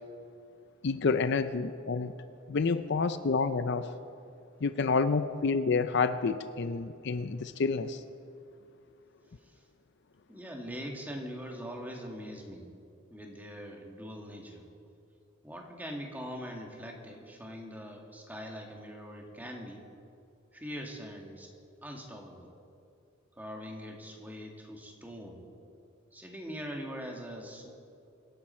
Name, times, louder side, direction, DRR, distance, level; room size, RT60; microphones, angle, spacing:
voice 1, 0.8-2.1 2.5-3.9 4.6-8.0, left 4 dB, 55° left, 12 dB, 0.5 m, -29 dB
voice 2, 10.3-12.7 13.1-14.6 15.4-19.8 20.5-21.5 21.8-22.5 23.4-25.4 26.1-27.7, equal, 10° right, 1 dB, 1.9 m, -42 dB
25.5 x 11.0 x 4.4 m, 2.6 s
head